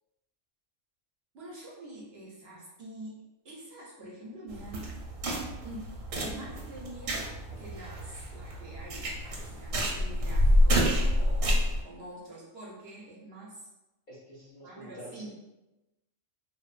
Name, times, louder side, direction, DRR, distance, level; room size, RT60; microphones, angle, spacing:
voice 1, 1.3-5.0 5.6-11.5 11.8-13.7 14.6-15.3, right 1 dB, 60° right, -5 dB, 0.7 m, -46 dB
sound 1, 4.5-11.8, equal, 85° right, 1.0 m, -28 dB
voice 2, 14.1-15.3, equal, 45° left, -8 dB, 0.7 m, -47 dB
2.6 x 2.1 x 2.3 m, 1.0 s
omnidirectional pair, 1.3 m